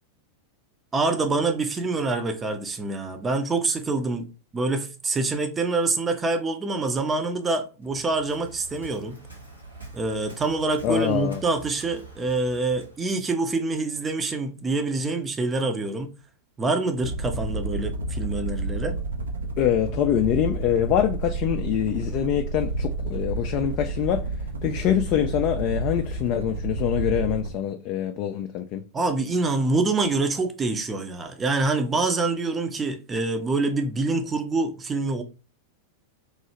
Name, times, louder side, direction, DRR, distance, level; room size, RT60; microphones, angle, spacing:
voice 1, 0.9-4.3 4.5-9.2 9.9-16.1 16.6-19.0 28.9-35.2, right 3 dB, 20° right, 0.5 m, -26 dB
Waves surf, 7.8-13.1, right 2 dB, 85° right, 1.7 m, -45 dB
voice 2, 10.8-11.4 19.6-24.2 24.6-28.8, left 10 dB, 40° left, 0.3 m, -24 dB
sound 1, 17.0-27.6, right 2 dB, 70° right, 0.5 m, -30 dB
3.1 x 2.7 x 2.8 m
figure-of-eight pair, 90°, 0 cm